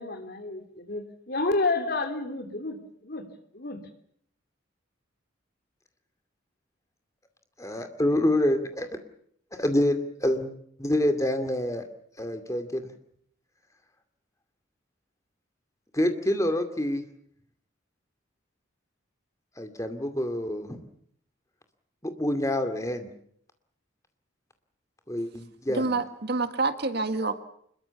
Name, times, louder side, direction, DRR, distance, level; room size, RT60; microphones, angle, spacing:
voice 1, 0.0-2.8 3.0-3.3 3.5-3.8, left 3 dB, 50° left, 7 dB, 3.3 m, -30 dB
voice 2, 7.6-8.9 9.5-10.5 10.8-11.9 12.2-12.9 15.9-17.0 19.6-20.8 22.0-23.1 25.1-25.9, left 1 dB, 15° left, 7 dB, 2.4 m, -27 dB
voice 3, 25.7-27.4, right 3 dB, 55° right, 9 dB, 1.8 m, -27 dB
25.5 x 22.0 x 7.1 m, 0.66 s
head